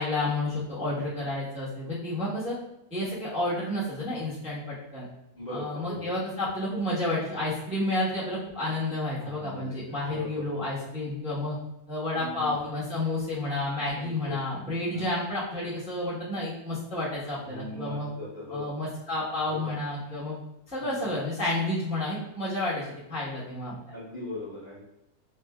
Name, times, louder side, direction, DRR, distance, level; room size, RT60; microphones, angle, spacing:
voice 1, 0.0-2.6 2.9-5.1 5.5-11.5 11.9-18.1 18.5-20.4 20.7-23.7, left 2 dB, 5° right, -11 dB, 0.9 m, -30 dB
voice 2, 5.4-6.1 9.2-9.8 10.0-10.7 12.1-12.5 13.9-14.4 14.9-15.0 17.5-18.7 19.5-19.7 20.8-21.1 23.7-24.8, left 1 dB, 30° left, -10 dB, 1.1 m, -39 dB
5.0 x 2.6 x 2.3 m, 0.84 s
omnidirectional pair, 1.6 m